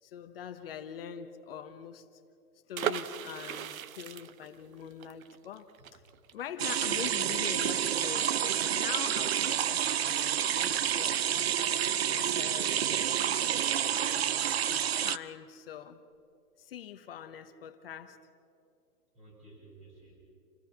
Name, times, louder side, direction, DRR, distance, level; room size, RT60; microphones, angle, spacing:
voice 1, 0.0-2.2 2.7-6.0 6.3-12.8 13.9-14.2 14.7-16.0 16.6-18.2, left 8 dB, 40° left, 8 dB, 1.0 m, -43 dB
sound 1, 2.7-8.4 8.7-8.8 9.0-9.3, right 10 dB, 65° right, 0.9 m, -38 dB
sound 2, 6.6-15.2, right 9 dB, 45° right, 0.4 m, -29 dB
voice 2, 12.8-13.8 19.1-20.2, right 2 dB, 15° right, -2 dB, 6.3 m, -55 dB
28.0 x 17.0 x 5.8 m, 2.6 s
hypercardioid pair, 155°, 45 cm